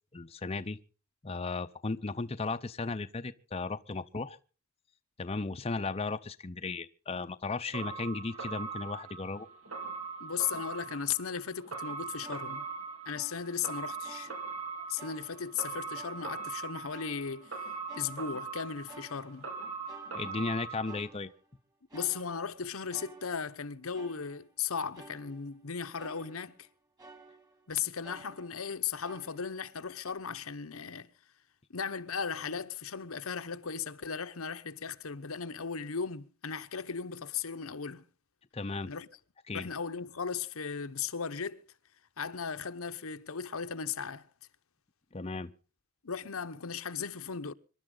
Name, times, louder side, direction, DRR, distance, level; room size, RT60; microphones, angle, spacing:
voice 1, 0.1-0.8 1.2-4.4 5.2-9.5 20.1-21.3 38.5-38.9 39.5-39.7 45.1-45.5, left 3 dB, 30° left, 0.6 m, -35 dB
sound 1, 7.7-21.0, right 5 dB, 85° right, 3.7 m, -41 dB
voice 2, 10.2-12.7 13.1-14.3 14.9-17.6 17.9-19.5 21.9-26.7 27.7-31.1 31.7-38.0 38.9-39.1 39.5-41.6 42.2-44.3 46.0-47.5, left 6 dB, 85° left, 0.9 m, -36 dB
sound 2, 12.2-13.7 14.0-14.7 15.0-15.6 15.9-16.5 16.9-18.6 18.9-19.6 19.9-20.6 20.8-21.5 21.9-23.6 23.9-24.6 24.9-25.7 26.0-26.7 27.0-27.7 28.0-29.8 30.0-30.1, right 2 dB, 20° right, 2.2 m, -54 dB
26.0 x 11.5 x 3.8 m
head